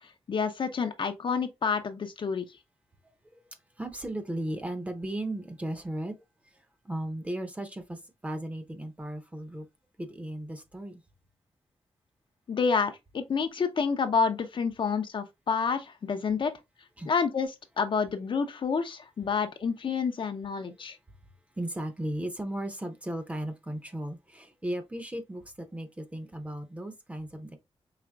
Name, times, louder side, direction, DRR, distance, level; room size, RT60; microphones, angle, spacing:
voice 1, 0.3-2.5 12.5-16.5 17.1-17.5 17.8-21.0, left 5 dB, 50° left, 0.5 m, -28 dB
voice 2, 3.8-6.2 6.4-9.7 10.0-11.0 17.0-17.1 21.6-27.6, right 1 dB, 10° right, 0.6 m, -36 dB
4.9 x 3.3 x 2.2 m
wide cardioid pair, 160°, 11 cm